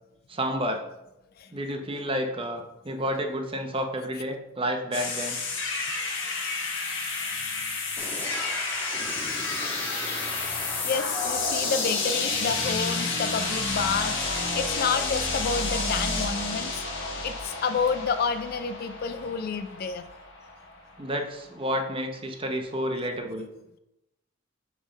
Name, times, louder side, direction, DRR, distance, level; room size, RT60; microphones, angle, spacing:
voice 1, 0.3-0.8 1.5-5.4 21.0-23.5, equal, 25° right, 4 dB, 0.8 m, -30 dB
sound 1, 4.9-20.8, left 3 dB, 65° left, 1.3 m, -30 dB
sound 2, 8.0-14.8, equal, 10° left, 1.6 m, -40 dB
voice 2, 10.0-16.8 17.2-20.0, left 5 dB, 45° left, 11 dB, 0.3 m, -30 dB
7.1 x 3.5 x 5.4 m, 0.89 s
head